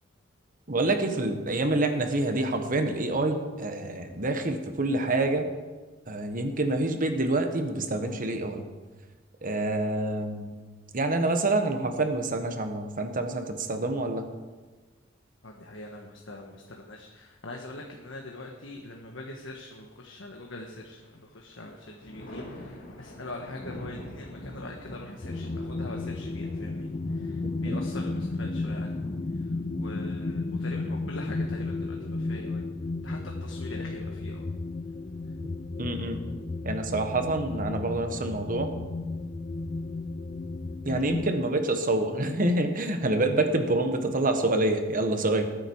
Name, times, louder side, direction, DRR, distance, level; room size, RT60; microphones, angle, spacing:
voice 1, 0.7-5.5 6.1-8.7 9.4-10.5 10.9-14.3 27.6-27.8 35.8-36.3 36.6-38.7 40.8-45.5, right 2 dB, 45° right, 6 dB, 1.4 m, -27 dB
voice 2, 15.4-28.9 29.7-32.6 33.0-34.5, left 2 dB, 75° left, 1 dB, 1.5 m, -43 dB
Thunder, 20.4-21.1 21.5-31.1 32.6-33.4, left 1 dB, 50° left, 2.3 m, -45 dB
sound 1, 25.2-41.3, left 2 dB, 30° left, 0.4 m, -33 dB
20.0 x 9.2 x 4.7 m, 1.3 s
head